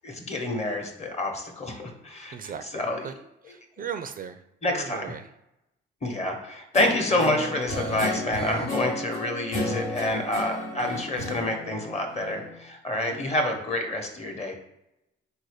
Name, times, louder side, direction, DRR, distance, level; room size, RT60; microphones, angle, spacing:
voice 1, 0.0-3.1 4.6-5.1 6.0-14.5, left 1 dB, 35° left, 3 dB, 1.0 m, -28 dB
voice 2, 2.3-3.2 3.4-4.4 4.7-5.3 10.8-11.3 12.9-13.3, right 7 dB, 45° right, 9 dB, 0.4 m, -38 dB
Guitar, 6.7-12.6, left 1 dB, 85° left, 1.1 m, -33 dB
4.0 x 2.6 x 4.8 m, 0.86 s
cardioid pair, 90°, 20 cm